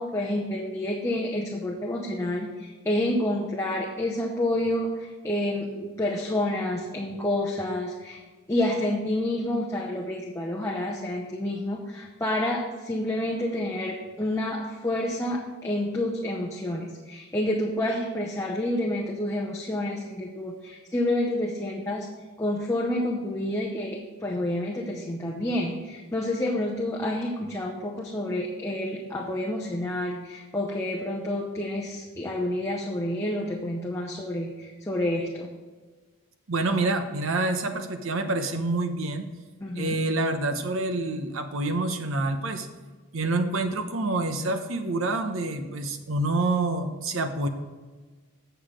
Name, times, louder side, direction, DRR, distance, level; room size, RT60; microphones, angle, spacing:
voice 1, 0.0-8.2 8.5-22.1 22.4-35.5 39.6-40.0, left 1 dB, 15° left, -2 dB, 0.7 m, -29 dB
voice 2, 36.5-39.3 39.8-42.7 43.1-47.5, right 2 dB, 65° right, 7 dB, 0.9 m, -27 dB
7.9 x 6.9 x 5.1 m, 1.3 s
head